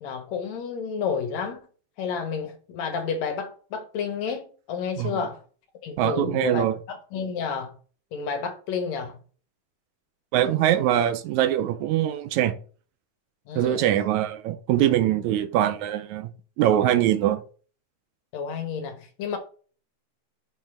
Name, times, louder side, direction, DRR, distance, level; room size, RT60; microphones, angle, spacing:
voice 1, 0.0-1.6 2.0-5.4 5.8-7.8 8.1-9.2 13.5-13.9 18.3-19.4, left 6 dB, 70° left, 2.3 m, -31 dB
voice 2, 6.0-6.8 10.3-12.6 13.6-16.3 16.6-17.4, right 11 dB, 90° right, 2.0 m, -23 dB
6.3 x 4.1 x 4.9 m
omnidirectional pair, 3.3 m